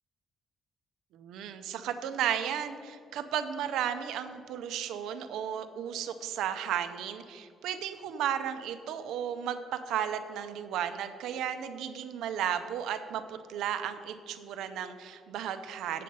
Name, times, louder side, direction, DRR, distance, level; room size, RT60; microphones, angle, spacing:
voice 1, 1.1-16.0, right 9 dB, 85° right, 9 dB, 0.6 m, -34 dB
7.8 x 7.5 x 5.3 m, 2.3 s
cardioid pair, 145°, 0 cm